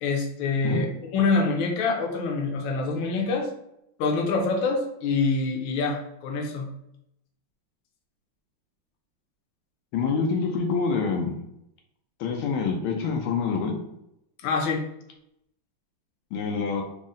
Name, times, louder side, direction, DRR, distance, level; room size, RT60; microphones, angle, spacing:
voice 1, 0.0-0.9 1.1-3.5 4.0-6.7 14.4-14.8, left 4 dB, 75° left, 2 dB, 1.4 m, -25 dB
voice 2, 9.9-11.3 12.2-13.8 16.3-16.8, left 5 dB, 90° left, 2 dB, 1.5 m, -26 dB
4.0 x 2.0 x 3.7 m, 0.79 s
omnidirectional pair, 2.3 m